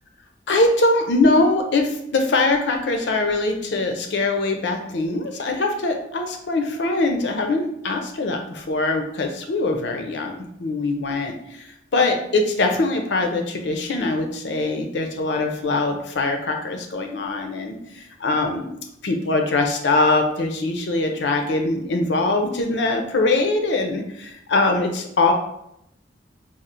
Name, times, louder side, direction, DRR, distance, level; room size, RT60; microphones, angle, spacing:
voice 1, 0.5-18.8 19.0-25.3, left 2 dB, 70° left, 4 dB, 0.5 m, -22 dB
4.2 x 2.0 x 2.5 m, 0.77 s
head